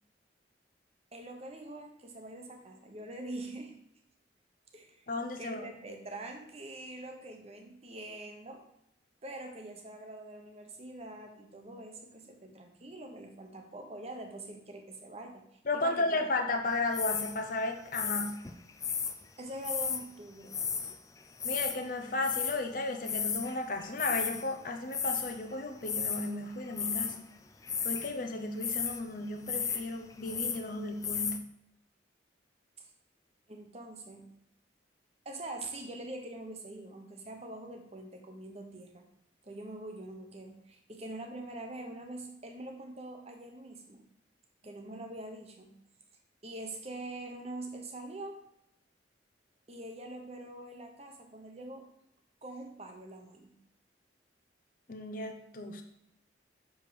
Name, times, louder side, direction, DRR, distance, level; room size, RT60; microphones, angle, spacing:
voice 1, 1.1-3.8 4.7-5.1 5.4-8.6 9.2-15.4 15.7-16.2 19.4-20.6 32.8-32.9 33.5-34.4 35.2-39.0 39.4-44.0 44.6-45.8 46.4-48.4 49.7-51.9 52.4-53.6, right 1 dB, 35° right, 4 dB, 1.1 m, -44 dB
voice 2, 5.1-5.6 15.7-18.4 21.4-27.3 27.8-31.4 54.9-55.8, left 2 dB, 50° left, 5 dB, 0.8 m, -34 dB
sound 1, 16.9-17.4 17.9-19.1 19.6-20.0 20.5-20.9 21.2-21.8 22.2-22.6 23.0-23.6 23.8-24.5 24.9-25.4 25.8-26.3 26.7-27.2 27.6-28.1 28.6-29.0 29.4-29.8 30.1-30.6 31.0-31.4, left 6 dB, 20° left, 0.4 m, -33 dB
6.7 x 4.9 x 5.2 m, 0.80 s
head